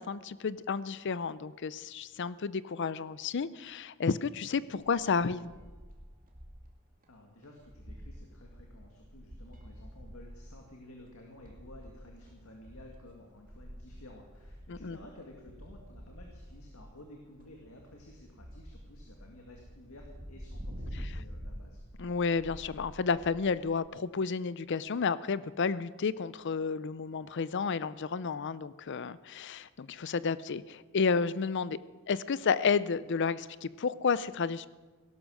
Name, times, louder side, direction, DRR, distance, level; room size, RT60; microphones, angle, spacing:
voice 1, 0.0-5.5 14.7-15.0 22.0-31.8 32.1-34.7, left 5 dB, 55° left, 17 dB, 0.5 m, -31 dB
sound 1, 4.8-6.7 7.0-7.1 7.4-23.7, equal, 40° right, 2.3 m, -47 dB
voice 2, 7.1-21.8, left 1 dB, 85° left, 1 dB, 2.0 m, -53 dB
17.5 x 11.5 x 6.4 m, 1.3 s
head